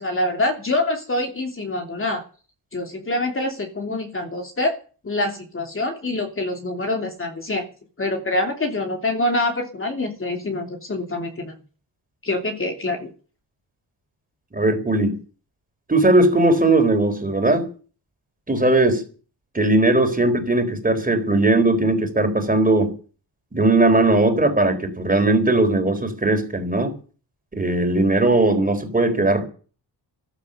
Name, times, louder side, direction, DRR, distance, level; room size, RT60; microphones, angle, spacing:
voice 1, 0.0-2.2 2.7-4.8 5.0-7.7 8.0-11.5 12.2-13.1, left 2 dB, 30° left, 3 dB, 3.0 m, -25 dB
voice 2, 14.5-15.2 15.9-17.7 18.5-19.0 19.5-22.9 23.5-26.9 27.5-29.5, right 2 dB, 20° right, 6 dB, 3.9 m, -18 dB
14.0 x 12.5 x 6.8 m, 0.38 s
cardioid pair, 115°, 43 cm